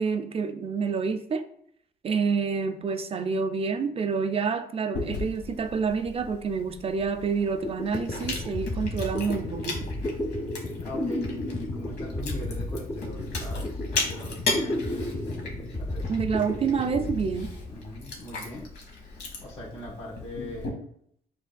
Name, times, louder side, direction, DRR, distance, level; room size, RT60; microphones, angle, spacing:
voice 1, 0.0-1.4 2.0-9.9 16.1-17.5, right 5 dB, 35° right, 8 dB, 0.4 m, -28 dB
Chewing mastication, 4.9-20.7, left 3 dB, 80° left, 1.1 m, -37 dB
sound 1, 7.6-18.1, left 1 dB, 20° left, 0.6 m, -33 dB
voice 2, 10.8-15.4 15.8-16.1 17.7-18.7 19.4-20.8, left 1 dB, 40° left, -8 dB, 1.5 m, -40 dB
5.0 x 3.3 x 2.3 m, 0.67 s
cardioid pair, 85°, 17 cm